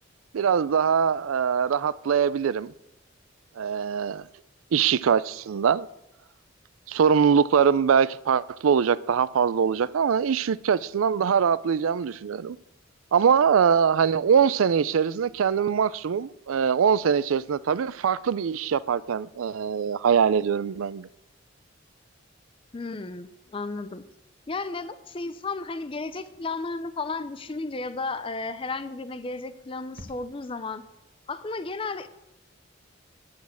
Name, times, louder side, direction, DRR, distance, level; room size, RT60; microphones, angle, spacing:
voice 1, 0.3-2.7 3.6-4.3 4.7-5.9 6.9-12.6 13.1-21.1, right 7 dB, 80° right, 0.4 m, -23 dB
voice 2, 22.7-24.0 24.5-30.8 31.3-32.1, left 3 dB, 25° left, 0.4 m, -33 dB
sound 1, 26.1-26.6 28.7-29.1 29.4-29.5 29.9-30.7, equal, 50° right, 1.4 m, -50 dB
9.3 x 6.3 x 8.4 m
head